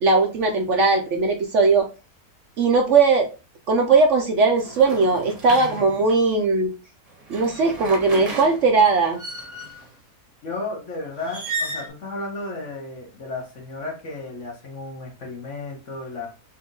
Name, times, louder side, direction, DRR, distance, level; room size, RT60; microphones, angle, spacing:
voice 1, 0.0-1.9 2.6-3.3 3.7-6.7 7.3-9.2, right 4 dB, 60° right, 3 dB, 0.9 m, -19 dB
sound 1, 4.6-6.3 7.1-9.9 11.2-11.9, right 2 dB, 30° right, 0.9 m, -34 dB
voice 2, 10.4-16.3, left 3 dB, 55° left, 1 dB, 1.4 m, -33 dB
4.2 x 2.6 x 3.7 m, 0.30 s
omnidirectional pair, 1.6 m